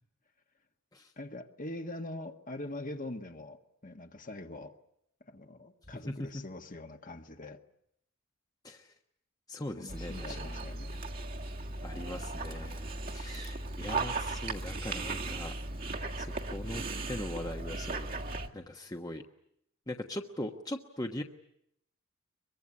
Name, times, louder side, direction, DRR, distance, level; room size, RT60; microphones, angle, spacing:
voice 1, 1.2-4.7 5.2-7.6 9.8-11.0 14.3-14.4, left 1 dB, 40° left, 6 dB, 1.6 m, -43 dB
voice 2, 5.9-6.4 8.6-8.9 9.5-10.6 11.8-15.6 16.2-18.1 18.5-19.2 19.9-21.2, left 1 dB, 15° left, 3 dB, 1.2 m, -40 dB
Dog, 9.9-18.5, right 3 dB, 40° right, 1.7 m, -37 dB
23.5 x 23.0 x 9.8 m, 0.74 s
head